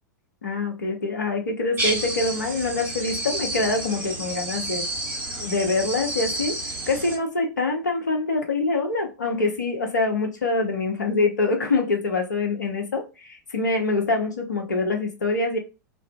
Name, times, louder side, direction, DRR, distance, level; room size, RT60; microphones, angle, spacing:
voice 1, 0.4-4.9 5.4-6.6 6.9-15.6, left 3 dB, 75° left, 0.7 m, -25 dB
sound 1, 1.8-7.2, right 1 dB, 20° right, 1.0 m, -30 dB
2.4 x 2.3 x 2.2 m
figure-of-eight pair, 95°, 10 cm